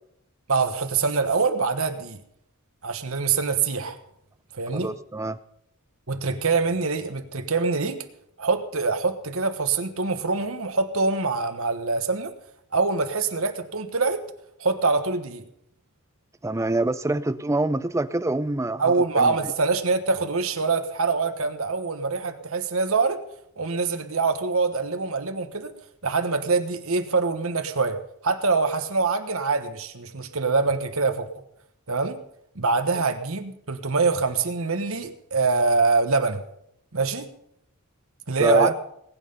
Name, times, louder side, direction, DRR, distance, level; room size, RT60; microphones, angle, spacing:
voice 1, 0.5-2.2 2.8-4.0 4.5-4.9 6.1-8.0 8.4-12.3 12.7-14.2 14.6-15.4 18.8-23.2 23.6-25.7 26.0-31.3 31.9-32.2 32.5-36.4 36.9-37.3 38.3-38.7, right 4 dB, 65° right, 8 dB, 1.3 m, -24 dB
voice 2, 4.7-5.4 16.4-19.3 38.4-38.7, right 2 dB, 15° right, 14 dB, 0.5 m, -25 dB
19.5 x 8.9 x 5.6 m, 0.75 s
head